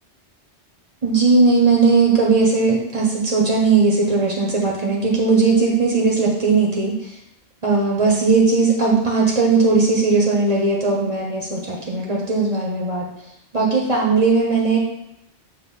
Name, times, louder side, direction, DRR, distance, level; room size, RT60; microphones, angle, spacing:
voice 1, 1.0-7.1 7.6-13.0 13.5-14.8, right 4 dB, 30° right, -2 dB, 1.0 m, -18 dB
7.3 x 2.6 x 5.7 m, 0.81 s
omnidirectional pair, 1.2 m